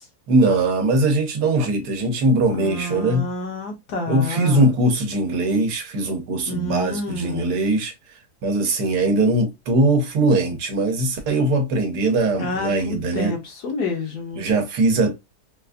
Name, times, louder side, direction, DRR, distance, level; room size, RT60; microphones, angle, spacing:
voice 1, 0.3-3.3 4.1-7.9 8.4-13.4 14.4-15.2, right 2 dB, 85° right, 1.4 m, -21 dB
voice 2, 2.5-4.7 6.4-7.5 12.4-14.5, left 2 dB, 75° left, 1.5 m, -29 dB
3.9 x 2.4 x 2.3 m
omnidirectional pair, 1.7 m